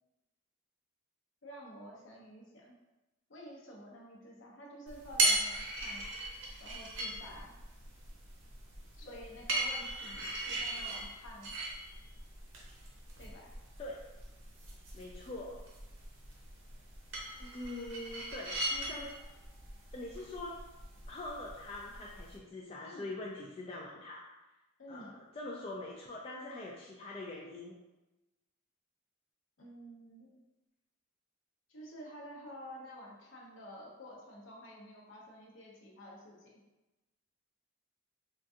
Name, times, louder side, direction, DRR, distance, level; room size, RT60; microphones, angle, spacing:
voice 1, 1.4-2.7 3.3-6.1 6.6-7.5 9.0-11.5 13.2-13.5 17.4-17.5 22.8-23.0 24.8-25.2 29.6-30.4 31.7-36.6, equal, 60° left, -2 dB, 0.7 m, -50 dB
sound 1, 4.9-22.4, right 1 dB, 60° right, 0.7 m, -38 dB
voice 2, 14.9-15.6 17.5-19.1 19.9-20.6 21.1-24.2 24.9-27.7, left 2 dB, 30° left, -4 dB, 0.3 m, -43 dB
3.8 x 2.4 x 2.5 m, 1.0 s
head